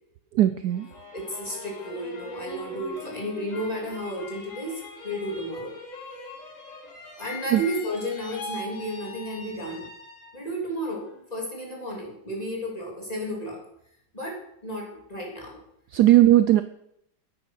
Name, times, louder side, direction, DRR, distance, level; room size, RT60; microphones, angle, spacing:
voice 1, 0.3-0.9 7.5-7.6 15.9-16.6, right 14 dB, 70° right, 11 dB, 1.0 m, -18 dB
sound 1, 0.7-10.5 10.9-11.6, left 2 dB, 85° left, 4.6 m, -41 dB
voice 2, 1.1-5.7 7.2-9.9 10.3-13.6 14.1-15.6, equal, 20° left, -2 dB, 3.4 m, -33 dB
10.0 x 9.3 x 5.9 m, 0.75 s
omnidirectional pair, 2.0 m